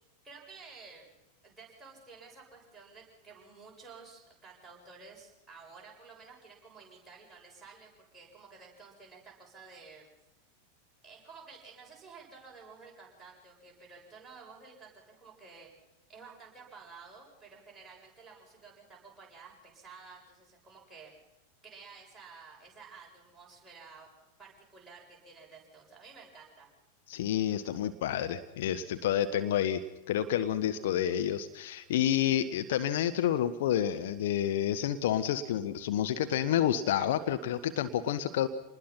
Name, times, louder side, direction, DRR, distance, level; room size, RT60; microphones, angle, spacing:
voice 1, 0.2-1.1 1.4-10.1 11.0-15.7 16.1-21.1 21.6-24.1 24.4-26.7, right 4 dB, 10° right, -3 dB, 7.6 m, -52 dB
voice 2, 27.1-29.8 30.1-38.5, left 10 dB, 55° left, 10 dB, 1.0 m, -29 dB
27.0 x 20.0 x 5.8 m, 0.96 s
figure-of-eight pair, 90°, 0 cm